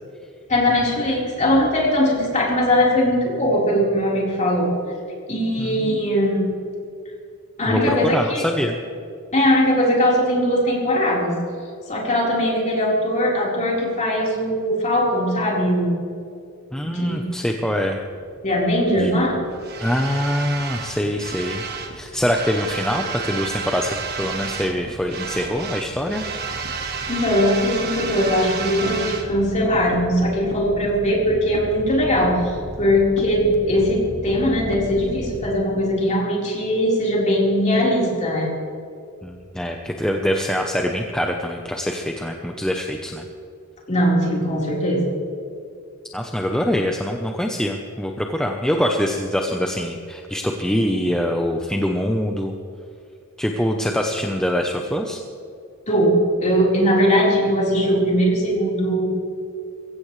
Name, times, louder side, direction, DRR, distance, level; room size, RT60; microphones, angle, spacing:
voice 1, 0.5-4.7 5.3-6.4 7.6-8.4 9.3-11.3 11.9-16.0 16.8-17.2 18.4-19.4 26.8-38.5 43.9-45.1 55.9-59.1, equal, 30° left, -4 dB, 4.2 m, -20 dB
voice 2, 5.6-6.0 7.7-8.8 16.7-18.0 19.0-19.1 19.8-26.2 39.2-43.3 46.1-52.5 53.4-55.2, equal, 5° left, 2 dB, 0.8 m, -24 dB
sound 1, 18.1-35.5, right 4 dB, 45° right, 1.4 m, -32 dB
22.5 x 16.0 x 3.3 m, 2.5 s
head